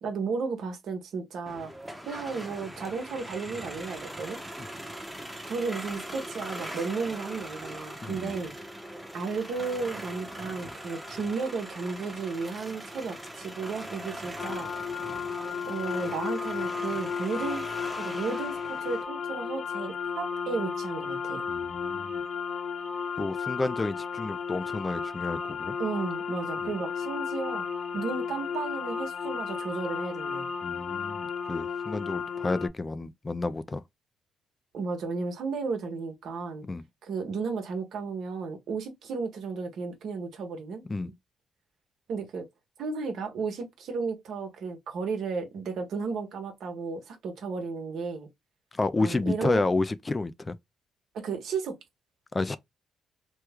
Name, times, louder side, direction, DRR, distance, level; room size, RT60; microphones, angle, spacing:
voice 1, 0.0-1.7 2.1-4.4 5.5-8.5 9.1-14.7 15.7-17.7 18.0-21.4 25.8-27.6 27.9-30.5 34.7-36.6 37.0-41.1 42.1-42.5 42.8-48.3 49.0-49.6 51.1-51.8, right 4 dB, 70° right, 1.1 m, -33 dB
sound 1, 1.5-19.0, right 1 dB, 5° right, 0.8 m, -41 dB
voice 2, 8.0-8.4 21.5-22.2 23.2-25.7 26.6-26.7 30.6-33.8 36.7-36.8 40.9-41.1 48.7-50.6 52.3-52.6, left 3 dB, 25° left, 0.3 m, -30 dB
sound 2, 14.4-32.7, left 6 dB, 45° left, 1.1 m, -34 dB
3.0 x 2.2 x 3.4 m
cardioid pair, 90°, 0 cm